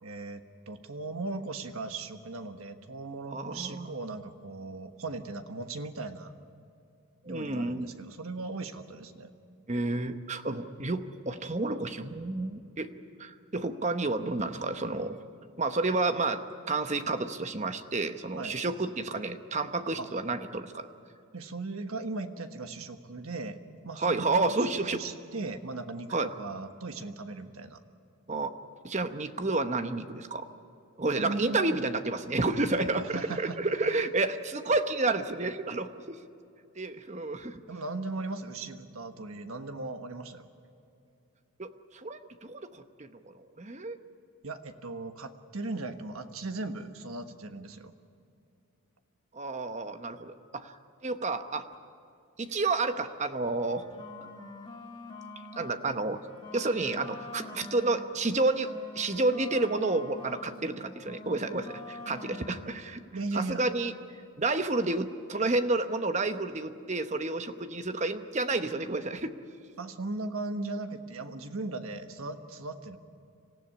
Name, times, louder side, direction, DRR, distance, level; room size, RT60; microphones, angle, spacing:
voice 1, 0.0-6.3 7.2-9.3 18.4-18.6 20.0-20.1 21.3-23.6 23.8-27.8 31.1-31.7 32.7-33.6 37.7-40.5 44.4-47.9 63.1-63.6 69.8-73.0, right 3 dB, 80° right, 7 dB, 1.3 m, -38 dB
voice 2, 3.3-3.9 7.2-7.9 9.7-12.9 13.2-15.2 15.6-16.4 16.7-20.9 24.0-25.0 26.1-26.3 28.3-28.5 28.8-30.5 31.0-36.2 36.8-37.6 41.6-42.7 43.0-44.0 49.3-50.7 51.0-51.7 52.4-53.8 54.2-54.3 55.6-56.2 56.5-63.0 63.3-63.9 64.4-69.3, right 3 dB, 30° right, 9 dB, 0.9 m, -30 dB
sound 1, 53.6-55.8 56.1-60.5 60.8-62.8, left 2 dB, 20° left, 1.9 m, -45 dB
26.0 x 15.5 x 9.9 m, 2.5 s
head